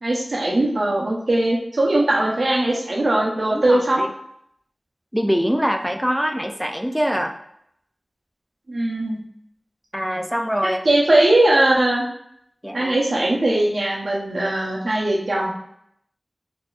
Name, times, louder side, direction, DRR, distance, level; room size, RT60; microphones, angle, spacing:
voice 1, 0.0-4.1 8.7-9.2 10.8-12.0 12.7-15.5, right 1 dB, 75° right, -2 dB, 0.8 m, -20 dB
voice 2, 3.5-4.1 5.1-7.4 9.9-10.8 12.6-12.9, equal, 5° right, 5 dB, 0.4 m, -23 dB
3.9 x 2.8 x 2.4 m, 0.73 s
wide cardioid pair, 50°, 0 cm